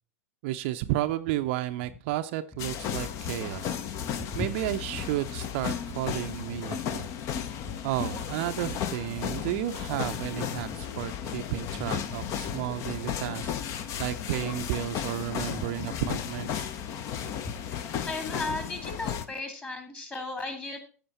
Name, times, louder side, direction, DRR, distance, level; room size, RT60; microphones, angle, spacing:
voice 1, 0.4-3.8 4.4-7.1 7.8-16.7, right 14 dB, 50° right, 8 dB, 0.5 m, -32 dB
sound 1, 2.6-19.3, left 9 dB, 40° left, 0.8 m, -34 dB
voice 2, 15.5-16.1 17.4-17.5 18.1-20.8, left 2 dB, 15° left, 5 dB, 2.3 m, -36 dB
14.0 x 5.1 x 4.2 m, 0.39 s
figure-of-eight pair, 95°, 8 cm